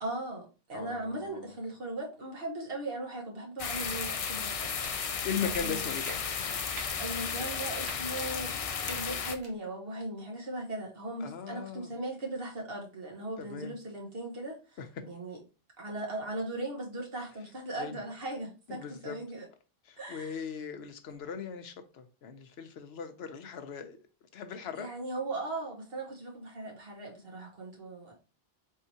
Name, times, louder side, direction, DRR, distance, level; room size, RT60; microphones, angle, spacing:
voice 1, 0.0-5.9 7.0-15.4 15.8-19.5 20.0-20.4 24.7-28.2, right 2 dB, 65° right, 1.5 m, -38 dB
voice 2, 0.7-1.5 5.2-6.2 11.2-11.9 13.4-13.8 14.8-14.9 17.8-18.0 18.7-19.2 19.9-24.0 24.3-24.9, left 6 dB, 85° left, 0.9 m, -39 dB
sound 1, 3.6-9.4, left 6 dB, 50° left, 0.4 m, -34 dB
sound 2, 4.8-4.9 5.5-5.6 6.0-6.2 6.7-6.9 7.8-8.0 8.8-9.0 9.4-9.5, right 2 dB, 85° right, 1.3 m, -43 dB
4.5 x 3.7 x 2.7 m
omnidirectional pair, 1.0 m